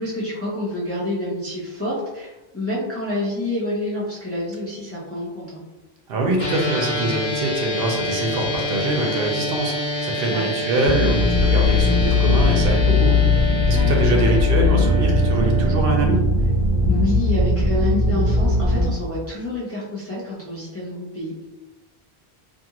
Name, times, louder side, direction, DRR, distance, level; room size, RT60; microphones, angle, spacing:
voice 1, 0.0-5.6 10.3-10.5 13.7-14.4 16.9-21.5, left 1 dB, 20° left, -7 dB, 0.5 m, -28 dB
voice 2, 6.1-16.2, right 2 dB, 70° right, 1 dB, 0.7 m, -24 dB
sound 1, 6.4-15.7, left 1 dB, 80° left, 1.1 m, -27 dB
sound 2, 10.8-18.9, left 3 dB, 55° left, 0.8 m, -19 dB
2.5 x 2.4 x 2.8 m, 1.0 s
omnidirectional pair, 1.1 m